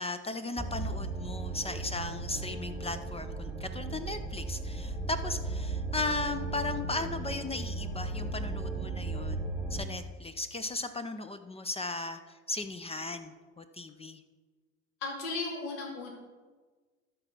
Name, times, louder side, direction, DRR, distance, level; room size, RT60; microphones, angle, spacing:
voice 1, 0.0-14.2, left 3 dB, 15° left, 9 dB, 0.5 m, -36 dB
sound 1, 0.6-9.9, right 3 dB, 5° right, 1.1 m, -36 dB
voice 2, 15.0-16.1, left 3 dB, 70° left, -1 dB, 2.4 m, -36 dB
12.5 x 4.8 x 6.1 m, 1.4 s
hypercardioid pair, 80°, 43 cm